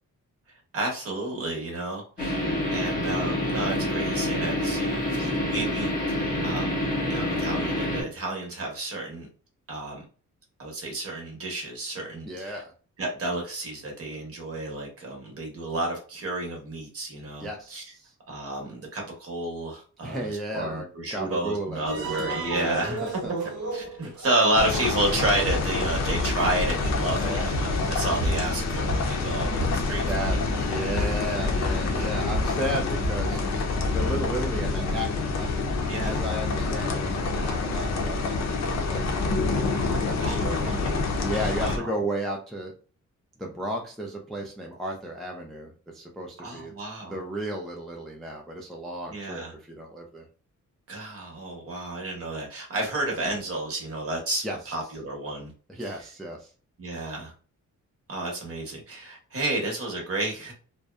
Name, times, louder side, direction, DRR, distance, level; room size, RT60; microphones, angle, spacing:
voice 1, 0.7-6.8 7.1-9.3 9.7-10.0 10.6-12.6 13.0-17.8 18.3-23.0 23.7-30.4 30.7-31.0 35.9-36.2 40.2-41.0 41.3-41.9 46.4-47.2 49.1-49.5 50.9-55.5 56.8-57.3 58.1-60.5, right 2 dB, 50° right, 0.9 m, -31 dB
sound 1, 2.2-8.0, left 1 dB, 30° left, 0.8 m, -27 dB
voice 2, 12.2-12.7 17.4-18.1 20.0-23.3 27.2-27.5 30.1-33.4 33.9-35.5 36.0-38.6 38.9-40.6 41.2-42.7 43.4-46.7 47.1-50.2 54.4-54.6 55.7-56.5, right 1 dB, ahead, 0.3 m, -34 dB
sound 2, 21.9-33.4, right 1 dB, 75° right, 0.9 m, -33 dB
sound 3, 24.5-41.8, left 3 dB, 60° left, 0.5 m, -27 dB
2.6 x 2.1 x 2.3 m
wide cardioid pair, 155°, 30 cm